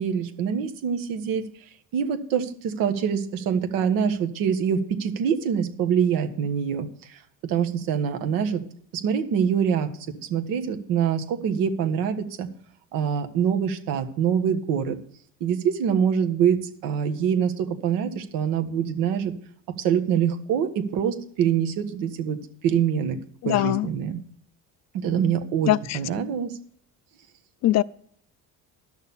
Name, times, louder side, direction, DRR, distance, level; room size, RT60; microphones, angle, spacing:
voice 1, 0.0-1.5 1.9-8.6 9.0-9.9 10.3-12.5 12.9-15.0 15.4-19.3 19.8-23.2 23.4-24.2 24.9-26.5, right 8 dB, 85° right, 1.5 m, -25 dB
voice 2, 23.4-23.9 25.7-26.0 27.6-27.8, left 14 dB, 55° left, 0.5 m, -21 dB
11.5 x 6.6 x 7.1 m
cardioid pair, 120°, 33 cm